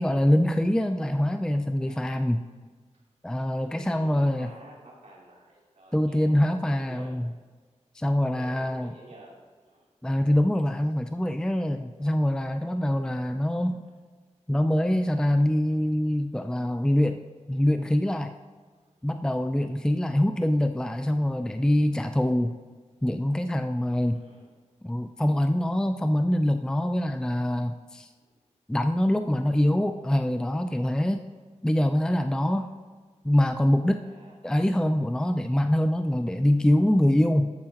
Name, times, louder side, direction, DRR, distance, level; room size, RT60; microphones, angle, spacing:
voice 1, 0.0-2.4 3.2-4.5 5.9-7.3 7.9-8.9 10.0-13.8 14.5-17.2 17.5-18.3 19.0-22.6 23.0-24.2 24.8-28.1 28.7-31.3 31.6-32.7 33.2-34.0 34.4-37.5, left 1 dB, 5° left, 8 dB, 0.4 m, -24 dB
voice 2, 1.8-2.5 3.6-7.2 8.3-9.3 9.7-9.9 11.0-11.2 12.6-13.0 24.1-24.5 28.2-28.3 32.3-32.6 34.0-34.3, right 2 dB, 70° right, -4 dB, 2.9 m, -51 dB
13.0 x 8.5 x 2.9 m, 1.5 s
wide cardioid pair, 70°, 13 cm